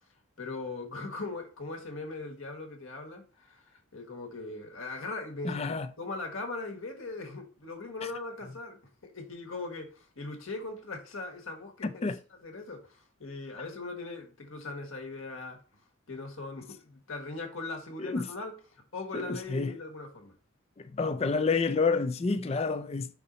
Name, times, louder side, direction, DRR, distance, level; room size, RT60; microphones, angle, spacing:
voice 1, 0.4-12.1 12.4-15.6 16.1-20.3, left 3 dB, 65° left, 1.4 m, -40 dB
voice 2, 5.4-5.9 12.0-12.2 18.0-18.2 19.1-19.7 20.9-23.1, left 4 dB, 30° left, 0.3 m, -28 dB
5.7 x 3.9 x 4.2 m
head